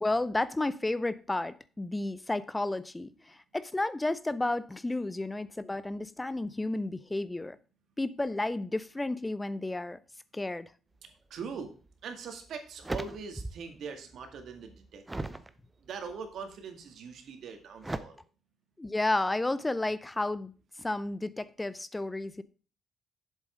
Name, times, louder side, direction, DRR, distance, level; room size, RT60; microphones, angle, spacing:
voice 1, 0.0-7.6 8.0-10.0 10.3-10.7 18.8-20.5 20.8-22.4, left 2 dB, 15° left, 0.5 m, -32 dB
voice 2, 11.3-11.7 12.0-15.4 15.8-18.2, right 5 dB, 70° right, 2.0 m, -42 dB
sound 1, 11.9-12.0 12.5-13.8 14.1-15.5 16.1-16.5 17.8-18.0, right 2 dB, 15° right, 0.8 m, -38 dB
7.7 x 7.4 x 5.0 m
cardioid pair, 90°, 0 cm